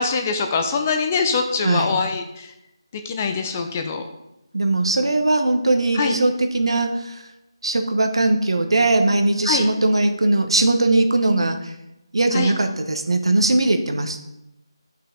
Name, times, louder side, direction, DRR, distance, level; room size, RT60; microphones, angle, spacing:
voice 1, 0.0-2.5 3.0-4.1 6.0-6.2 9.5-9.7 12.3-12.5, left 5 dB, 25° left, 5 dB, 0.7 m, -23 dB
voice 2, 1.6-1.9 4.5-7.3 7.6-11.7 12.1-14.2, right 2 dB, 70° right, 6 dB, 1.1 m, -20 dB
11.0 x 5.7 x 3.8 m, 0.89 s
figure-of-eight pair, 165°, 3 cm